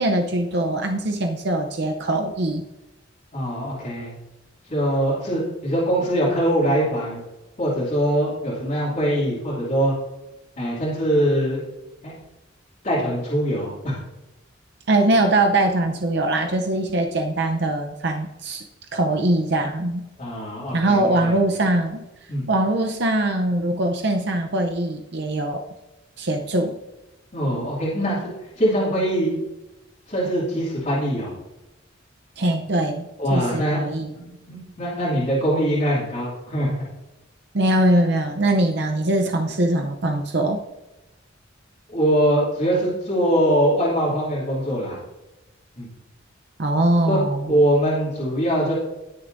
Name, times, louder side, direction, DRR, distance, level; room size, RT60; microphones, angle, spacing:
voice 1, 0.0-2.6 14.9-20.0 20.7-22.0 22.5-25.6 26.2-26.8 32.4-34.1 37.5-40.6 46.6-47.5, right 1 dB, 60° right, 4 dB, 0.7 m, -22 dB
voice 2, 3.3-4.2 4.7-7.2 7.6-9.9 10.6-11.6 12.0-12.1 12.8-14.0 20.2-21.3 22.3-22.4 27.3-28.3 28.6-29.4 30.1-31.3 33.2-36.7 41.9-45.0 45.8-45.9 47.0-47.2 47.5-48.7, equal, 40° left, -8 dB, 2.6 m, -22 dB
18.5 x 6.8 x 2.6 m, 1.0 s
head